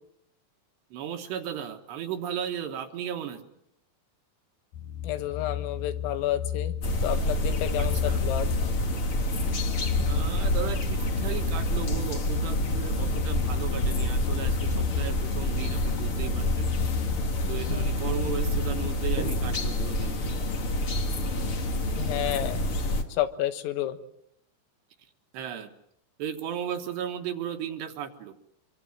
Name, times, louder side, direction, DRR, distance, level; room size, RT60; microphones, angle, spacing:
voice 1, 0.9-3.4 7.8-8.2 10.1-16.7 17.5-20.3 25.3-25.7 26.2-28.3, right 9 dB, 65° right, 6 dB, 3.3 m, -35 dB
sound 1, 4.7-19.0, left 8 dB, 75° left, 1.9 m, -34 dB
voice 2, 5.0-8.5 17.6-17.9 22.0-22.6 23.1-24.0, left 12 dB, 90° left, 10 dB, 4.0 m, -30 dB
sound 2, 6.8-23.0, left 1 dB, 55° left, 1.4 m, -28 dB
25.5 x 24.0 x 7.6 m, 0.73 s
omnidirectional pair, 5.8 m